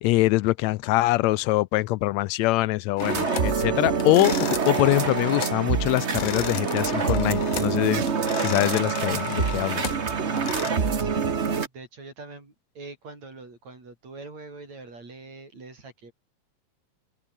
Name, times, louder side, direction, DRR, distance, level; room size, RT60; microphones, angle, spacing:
voice 1, 0.0-8.0 8.4-9.8, left 19 dB, 80° left, 1.7 m, -23 dB
sound 1, 3.0-3.6 4.0-5.6 5.9-7.8 8.1-10.7, left 11 dB, 65° left, 2.4 m, -35 dB
sound 2, 3.0-11.7, right 5 dB, 40° right, 1.0 m, -26 dB
voice 2, 10.2-16.1, right 3 dB, 65° right, 8.8 m, -43 dB
omnidirectional pair, 3.4 m